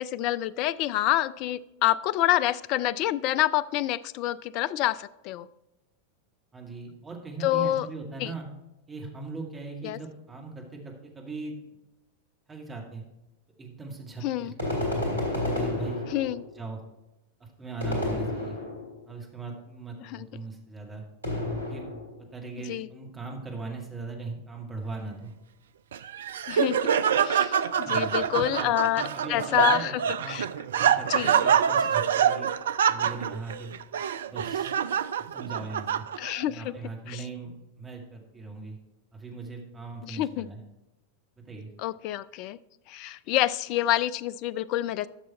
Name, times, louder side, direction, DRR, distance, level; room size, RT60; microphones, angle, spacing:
voice 1, 0.0-5.5 7.4-7.9 8.2-8.3 9.8-10.0 14.2-14.5 16.1-16.4 20.0-20.3 22.7-22.9 26.5-26.9 27.2-29.0 29.3-30.0 30.3-30.5 31.1-31.4 36.2-36.7 37.1-37.2 40.0-40.5 41.8-42.6 42.9-45.1, left 14 dB, 40° left, 17 dB, 0.4 m, -27 dB
voice 2, 6.5-8.4 8.9-11.5 12.5-13.0 13.6-14.9 15.4-16.0 16.5-16.8 17.4-18.6 19.1-21.0 21.6-21.8 22.2-25.3 27.7-30.4 30.7-32.5 32.9-33.8 34.3-34.7 35.2-36.1 36.5-38.8 39.1-40.6 41.4-41.7, right 3 dB, 15° right, 1 dB, 2.2 m, -39 dB
sound 1, 14.6-16.5 17.8-19.0 21.2-22.2, left 1 dB, 80° right, 2.7 m, -30 dB
Laughter, 25.9-36.4, right 8 dB, 60° right, 0.4 m, -25 dB
13.0 x 6.3 x 4.4 m, 0.96 s
figure-of-eight pair, 90°, 0 cm